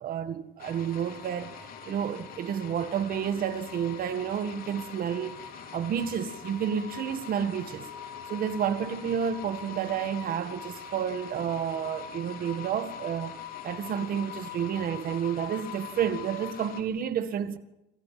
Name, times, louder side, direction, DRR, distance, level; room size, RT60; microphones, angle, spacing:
voice 1, 0.0-1.5 1.9-5.4 5.7-7.9 8.3-13.4 13.6-17.6, right 8 dB, 60° right, 1.8 m, -30 dB
sound 1, 0.6-16.8, left 8 dB, 60° left, 3.5 m, -42 dB
26.0 x 14.5 x 7.6 m
cardioid pair, 110°, 17 cm